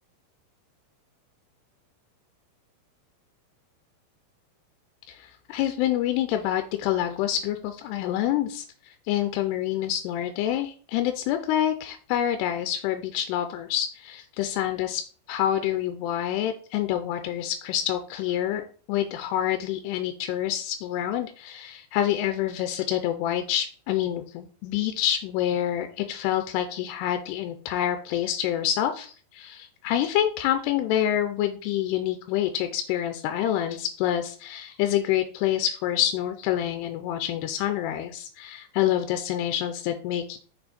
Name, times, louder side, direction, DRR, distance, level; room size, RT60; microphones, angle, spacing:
voice 1, 5.1-15.0 15.3-18.6 18.9-40.4, left 11 dB, 85° left, 8 dB, 2.6 m, -27 dB
6.3 x 4.4 x 4.2 m, 0.41 s
omnidirectional pair, 5.0 m